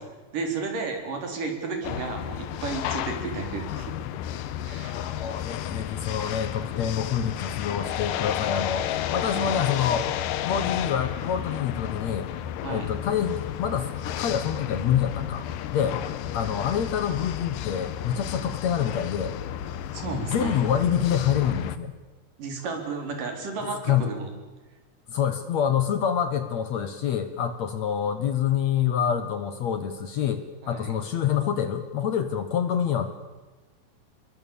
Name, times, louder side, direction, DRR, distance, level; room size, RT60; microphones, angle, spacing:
voice 1, 0.3-3.9 4.7-4.9 9.2-9.5 12.6-12.9 19.9-20.6 22.4-24.3 30.6-30.9, right 4 dB, 65° right, 3 dB, 5.3 m, -33 dB
sound 1, 1.8-21.8, left 11 dB, 75° left, 2.6 m, -32 dB
voice 2, 4.8-10.1 10.4-12.3 12.7-15.5 15.7-16.0 16.3-19.3 20.1-21.9 23.8-24.1 25.1-33.1, left 8 dB, 60° left, 10 dB, 2.1 m, -26 dB
27.5 x 22.0 x 7.1 m, 1.2 s
omnidirectional pair, 4.1 m